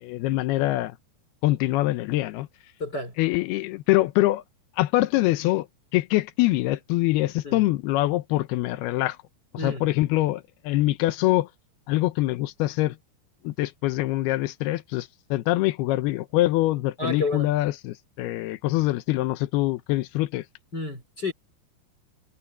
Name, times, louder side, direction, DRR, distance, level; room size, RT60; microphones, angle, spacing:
voice 1, 0.0-0.9 1.4-2.5 3.2-4.4 4.8-5.7 5.9-9.2 9.5-11.5 11.9-12.9 13.4-20.4, left 17 dB, 80° left, 2.3 m, -24 dB
voice 2, 2.8-3.1 7.4-7.7 9.6-9.9 17.0-17.5 20.7-21.3, left 2 dB, 25° left, 4.3 m, -30 dB
omnidirectional pair, 5.4 m